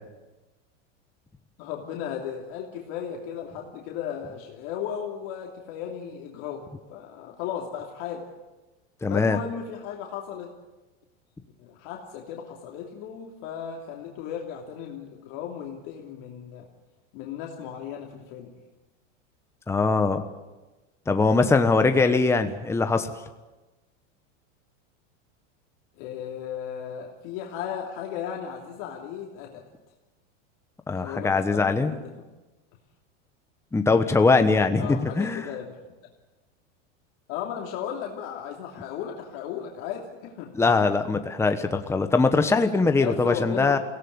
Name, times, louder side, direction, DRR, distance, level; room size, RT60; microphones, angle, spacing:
voice 1, 1.6-8.3 9.1-10.5 11.6-16.7 17.1-18.6 26.0-29.6 31.0-32.1 34.8-35.9 37.3-40.5 43.0-43.8, left 8 dB, 55° left, 0 dB, 3.0 m, -35 dB
voice 2, 9.0-9.4 19.7-20.2 21.1-23.1 30.9-31.9 33.7-35.5 40.5-43.8, left 3 dB, 5° left, 7 dB, 1.1 m, -22 dB
22.5 x 17.0 x 9.7 m, 1.1 s
supercardioid pair, 130°, 37 cm